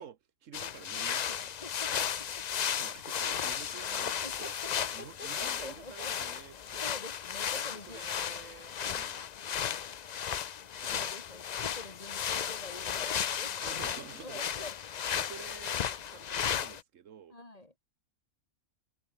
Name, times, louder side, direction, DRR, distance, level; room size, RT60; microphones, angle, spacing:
voice 1, 0.0-1.3 2.7-6.9 7.6-9.2 10.8-11.1 12.9-13.1 13.6-14.6 15.1-17.4, right 8 dB, 75° right, 1.3 m, -50 dB
sound 1, 0.5-16.8, left 8 dB, 50° left, 0.5 m, -35 dB
voice 2, 1.3-2.5 3.2-3.3 3.8-6.2 6.8-8.1 10.9-14.7 17.3-17.7, left 2 dB, 30° left, 2.6 m, -47 dB
omnidirectional pair, 1.3 m